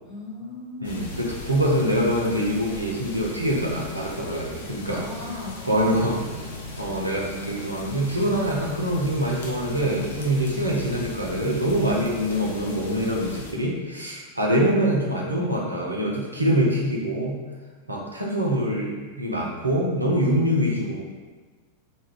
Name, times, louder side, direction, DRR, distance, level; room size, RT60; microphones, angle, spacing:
voice 1, 0.0-1.0 4.9-5.5 5.9-6.7, left 3 dB, 35° left, -8 dB, 1.2 m, -37 dB
sound 1, 0.8-13.5, left 2 dB, 60° left, 0.4 m, -38 dB
voice 2, 0.8-5.1 5.6-6.5 6.8-17.4 17.9-21.0, equal, 85° right, -3 dB, 0.5 m, -24 dB
2.3 x 2.1 x 3.4 m, 1.4 s
figure-of-eight pair, 90°, 0 cm